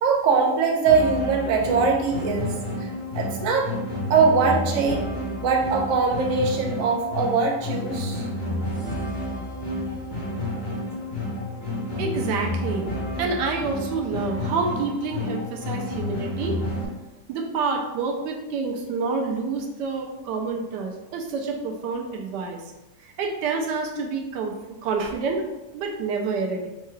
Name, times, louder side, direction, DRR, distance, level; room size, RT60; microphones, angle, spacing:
voice 1, 0.0-2.5 3.1-3.7 4.1-5.0 5.4-8.3 25.0-25.1, right 5 dB, 60° right, 1 dB, 0.9 m, -22 dB
sound 1, 0.9-16.9, left 1 dB, 85° left, 2.2 m, -30 dB
voice 2, 12.0-12.9 13.2-16.6 17.3-22.6 23.2-25.5 25.7-26.7, right 4 dB, 80° right, 2 dB, 1.2 m, -28 dB
5.5 x 2.2 x 3.1 m, 1.0 s
omnidirectional pair, 1.9 m